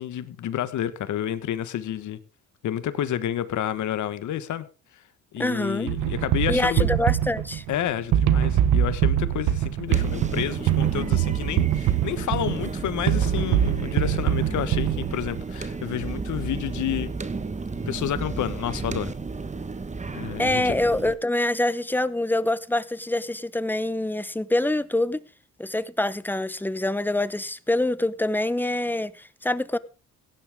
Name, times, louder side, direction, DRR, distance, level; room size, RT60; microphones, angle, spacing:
voice 1, 0.0-2.2 2.6-4.7 5.3-6.9 7.7-17.1 17.9-19.1 20.1-20.7, left 11 dB, 75° left, 1.5 m, -30 dB
voice 2, 5.4-5.9 6.5-7.6 20.4-25.2 25.6-29.8, left 1 dB, 5° left, 0.9 m, -25 dB
sound 1, 5.9-15.4, right 11 dB, 85° right, 1.1 m, -23 dB
sound 2, 9.9-21.2, right 4 dB, 25° right, 1.3 m, -33 dB
16.5 x 10.5 x 3.7 m
cardioid pair, 90°, 30 cm